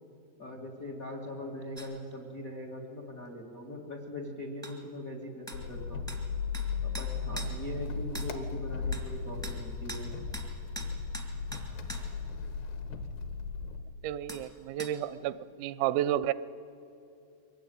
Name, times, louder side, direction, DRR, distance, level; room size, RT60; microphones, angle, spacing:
voice 1, 0.4-6.1 6.8-10.1, left 1 dB, 85° left, 2 dB, 0.7 m, -41 dB
sound 1, 1.7-1.9 4.6-4.8 5.5-5.6 6.1-6.2 6.5-6.7 6.9-7.5 8.1-8.3 8.9-9.1 9.4-9.6 9.9-10.0 10.3-10.5 10.7-12.0 14.3-14.4 14.8-14.9, right 2 dB, 5° left, 0.6 m, -42 dB
sound 2, 5.5-13.8, left 5 dB, 70° left, 2.9 m, -36 dB
voice 2, 14.0-16.3, right 12 dB, 85° right, 16 dB, 3.3 m, -31 dB
23.5 x 19.0 x 9.3 m, 2.8 s
omnidirectional pair, 5.9 m